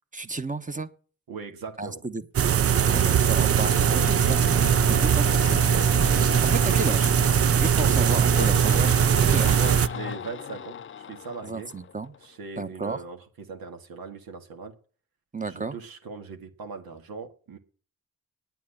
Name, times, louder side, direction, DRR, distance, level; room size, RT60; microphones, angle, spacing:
voice 1, 0.1-0.9 1.8-2.3 2.9-4.4 4.9-5.6 6.4-7.1 7.6-9.6 11.4-12.1 12.6-13.0 15.3-15.8, right 3 dB, 20° right, 10 dB, 1.2 m, -32 dB
voice 2, 1.3-2.0 3.8-4.3 6.7-6.9 7.8-8.1 9.3-11.7 12.2-14.7 15.4-17.6, right 4 dB, 80° right, 5 dB, 1.9 m, -39 dB
sound 1, 2.3-9.9, right 9 dB, 40° right, 0.5 m, -21 dB
sound 2, 2.7-12.2, left 7 dB, 35° left, 0.5 m, -35 dB
9.4 x 8.0 x 8.6 m, 0.41 s
supercardioid pair, 50°, 35 cm